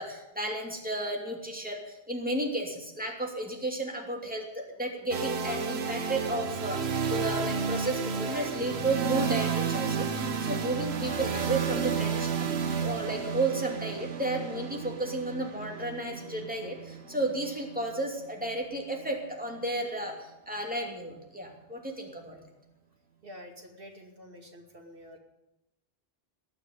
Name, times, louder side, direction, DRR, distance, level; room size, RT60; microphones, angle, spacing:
voice 1, 0.0-22.4, right 2 dB, 10° right, 0 dB, 2.7 m, -33 dB
sound 1, 5.1-19.0, right 6 dB, 90° right, 1.3 m, -32 dB
voice 2, 23.2-25.2, left 1 dB, 60° right, 2 dB, 2.6 m, -48 dB
19.0 x 6.7 x 9.5 m, 0.95 s
omnidirectional pair, 1.0 m